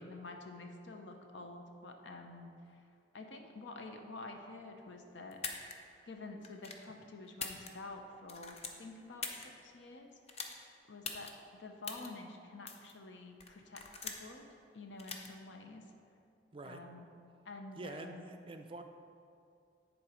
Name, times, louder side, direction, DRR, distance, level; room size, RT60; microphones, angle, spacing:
voice 1, 0.0-2.8 3.1-5.4 6.1-10.1 10.9-11.3 11.6-14.4 14.7-15.9 16.6-17.1 17.4-18.2, left 2 dB, 85° left, 4 dB, 0.7 m, -49 dB
sound 1, 5.3-5.7 6.4-6.8 7.3-8.0 8.3-9.5 10.3-10.6 11.1-11.3 11.8-12.1 12.7-12.9 13.4-14.3 15.0-15.3, left 5 dB, 35° left, 0.6 m, -42 dB
voice 2, 17.8-18.8, right 2 dB, 30° right, 6 dB, 0.4 m, -46 dB
9.9 x 3.9 x 5.0 m, 2.5 s
head